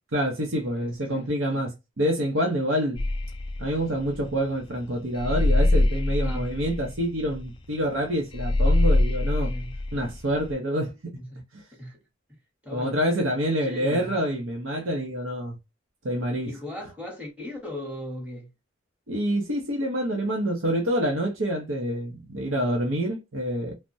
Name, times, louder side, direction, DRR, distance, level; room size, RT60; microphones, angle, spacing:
voice 1, 0.1-3.1 3.6-9.5 9.9-10.9 11.5-11.6 12.7-15.6 16.0-16.5 19.1-23.7, equal, 85° right, 0.8 m, -27 dB
voice 2, 0.8-1.7 6.2-6.5 9.4-9.7 11.1-11.4 11.7-12.0 12.6-13.0 13.6-14.2 16.4-18.5 22.4-22.6, left 1 dB, 5° right, 1.0 m, -38 dB
sound 1, 3.0-10.5, left 2 dB, 25° left, 0.3 m, -24 dB
3.3 x 2.1 x 2.5 m
head